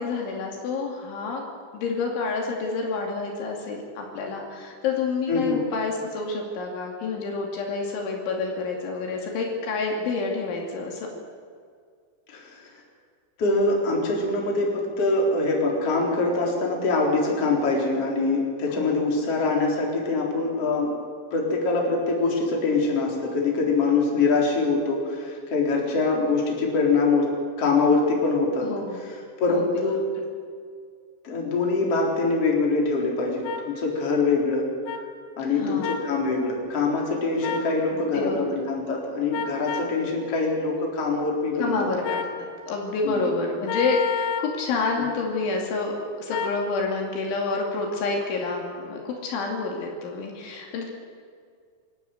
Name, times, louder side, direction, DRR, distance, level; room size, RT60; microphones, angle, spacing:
voice 1, 0.0-1.5 1.7-11.1 18.7-19.0 28.6-29.0 29.5-29.9 35.6-36.0 37.9-38.4 41.6-42.2 42.7-50.9, left 4 dB, 70° left, 0 dB, 4.9 m, -28 dB
voice 2, 5.3-5.6 12.3-12.8 13.4-20.9 21.3-27.3 27.6-28.7 29.1-30.0 31.2-34.7 35.4-41.9 43.0-43.2, left 3 dB, 30° left, -1 dB, 4.4 m, -24 dB
sound 1, 33.4-33.6 34.9-35.0 35.8-36.1 37.4-37.7 39.3-39.9 42.0-42.4 43.7-44.5 46.3-46.6, left 7 dB, 90° left, 4.1 m, -29 dB
26.5 x 13.5 x 9.2 m, 2.1 s
omnidirectional pair, 5.7 m